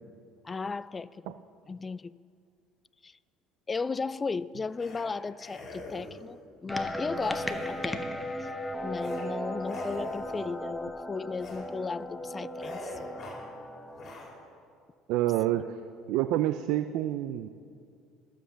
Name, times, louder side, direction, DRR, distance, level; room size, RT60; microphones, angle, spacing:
voice 1, 0.4-1.3 1.7-2.1 3.0-3.2 3.7-8.0 8.4-8.5 8.8-12.9 15.5-15.6, left 4 dB, 25° left, 19 dB, 0.3 m, -35 dB
sound 1, 4.8-5.0 5.4-6.3 7.1-8.1 8.9-9.2 9.6-10.5 11.3-11.6 12.0-12.2 12.6-13.5 13.9-14.3, left 2 dB, 45° left, 3.2 m, -43 dB
sound 2, 6.7-14.2, equal, 10° left, 1.0 m, -36 dB
voice 2, 15.1-15.8 16.1-17.5, right 13 dB, 75° right, 11 dB, 0.4 m, -28 dB
12.5 x 7.7 x 7.0 m, 2.3 s
supercardioid pair, 85°, 0 cm